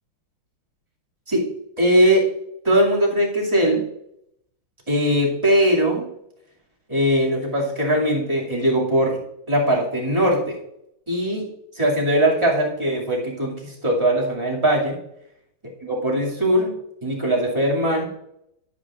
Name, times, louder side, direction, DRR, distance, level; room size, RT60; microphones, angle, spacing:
voice 1, 1.8-2.3 2.6-3.9 4.9-6.1 6.9-9.2 9.5-10.6 11.1-15.0 15.8-16.7 17.0-18.1, equal, 15° right, -4 dB, 2.3 m, -20 dB
11.0 x 10.5 x 2.5 m, 0.78 s
omnidirectional pair, 2.4 m